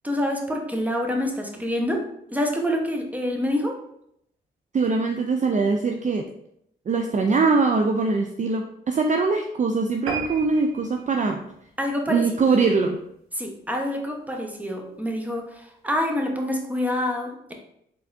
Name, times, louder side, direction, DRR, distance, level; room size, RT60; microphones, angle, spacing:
voice 1, 0.0-2.0 2.3-3.7 11.8-12.4 13.3-17.5, left 1 dB, 5° right, 2 dB, 1.0 m, -27 dB
voice 2, 4.7-6.3 6.9-11.4 12.1-13.0, right 4 dB, 35° right, 4 dB, 0.4 m, -22 dB
sound 1, 10.1-12.8 13.3-13.5 13.9-14.0 14.3-14.4 14.7-14.8, right 5 dB, 75° right, 0.8 m, -35 dB
4.1 x 3.5 x 2.6 m, 0.75 s
supercardioid pair, 45°, 21 cm